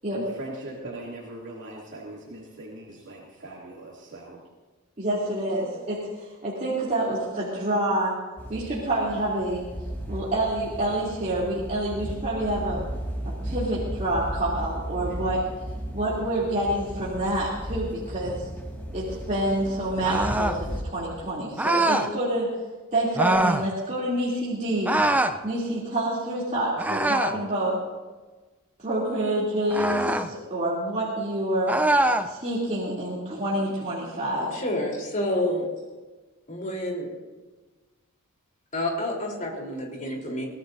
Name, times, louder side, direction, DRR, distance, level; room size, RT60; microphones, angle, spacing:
voice 1, 0.1-4.4, right 1 dB, 60° right, -5 dB, 2.9 m, -40 dB
voice 2, 5.0-8.2 8.5-9.6 10.1-12.8 13.4-15.5 15.9-18.5 18.9-22.5 22.9-25.0 25.4-27.8 28.8-31.8 32.2-34.5, right 1 dB, 35° right, -7 dB, 3.3 m, -27 dB
sound 1, 8.4-20.8, right 1 dB, 10° left, 2.2 m, -35 dB
sound 2, 20.0-20.6 21.6-22.1 23.1-23.7 24.8-25.4 26.8-27.4 29.7-30.3 31.7-32.3, right 2 dB, 5° right, 0.6 m, -23 dB
voice 3, 34.5-35.7 36.5-37.0 38.7-40.5, left 1 dB, 40° left, -1 dB, 3.9 m, -28 dB
24.0 x 17.5 x 2.8 m, 1.3 s
head